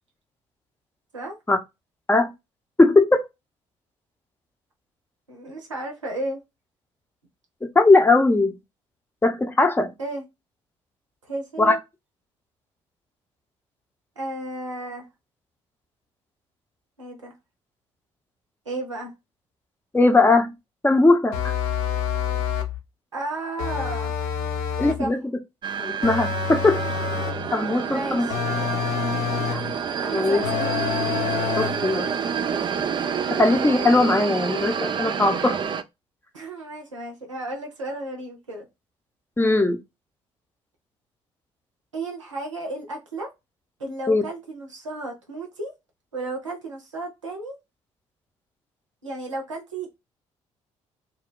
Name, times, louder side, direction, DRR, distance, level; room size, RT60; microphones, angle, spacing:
voice 1, 2.8-3.3 7.7-8.5 9.2-9.9 11.6-11.8 19.9-20.5 20.8-21.5 24.8-25.2 25.8-26.8 27.5-28.3 29.5-29.6 30.1-30.4 31.6-32.1 33.3-35.6 39.4-39.8 44.1-44.2, left 2 dB, 15° left, 0.6 m, -19 dB
voice 2, 5.3-6.4 10.0-10.2 11.3-11.8 14.2-15.1 17.0-17.3 18.7-19.1 23.1-24.1 25.0-25.1 27.8-28.4 30.0-30.9 36.3-38.7 41.9-43.3 43.8-45.7 46.1-47.6 49.0-50.0, right 2 dB, 85° right, 0.6 m, -33 dB
sound 1, 21.3-22.8 23.6-25.1 26.0-27.5 28.3-29.7 30.4-31.9, left 8 dB, 70° left, 0.5 m, -27 dB
sound 2, 25.6-35.8, right 7 dB, 30° right, 0.4 m, -28 dB
2.4 x 2.2 x 3.7 m
figure-of-eight pair, 45°, 16 cm